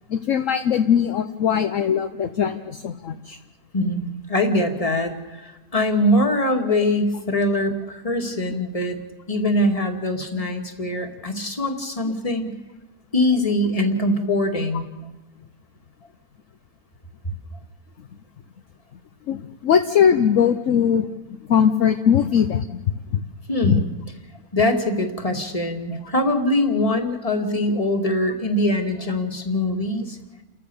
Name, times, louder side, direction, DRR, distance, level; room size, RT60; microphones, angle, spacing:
voice 1, 0.1-3.4 19.3-21.1 21.5-22.7 23.6-23.8, left 8 dB, 60° left, 8 dB, 1.1 m, -20 dB
voice 2, 3.7-9.0 9.3-12.6 13.1-14.9 23.5-23.8 24.5-30.2, left 1 dB, 25° left, 4 dB, 2.1 m, -23 dB
30.0 x 14.5 x 7.0 m, 1.1 s
omnidirectional pair, 1.6 m